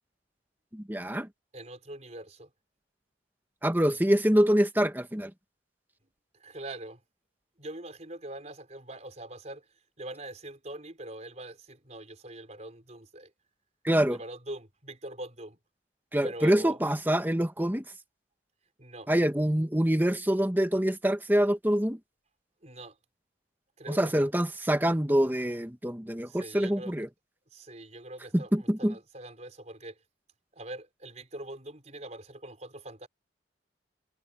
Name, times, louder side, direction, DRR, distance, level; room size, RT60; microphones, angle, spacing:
voice 1, 0.7-1.3 3.6-5.3 13.8-14.2 16.1-17.8 19.1-22.0 23.9-27.1 28.3-28.9, equal, 10° right, 1.2 m, -25 dB
voice 2, 1.5-2.5 6.4-7.0 7.6-9.6 10.0-13.3 14.1-15.6 16.2-16.8 18.8-19.1 22.6-23.0 23.8-24.3 26.3-26.9 27.5-30.0 30.5-33.1, right 1 dB, 35° right, 5.1 m, -43 dB
head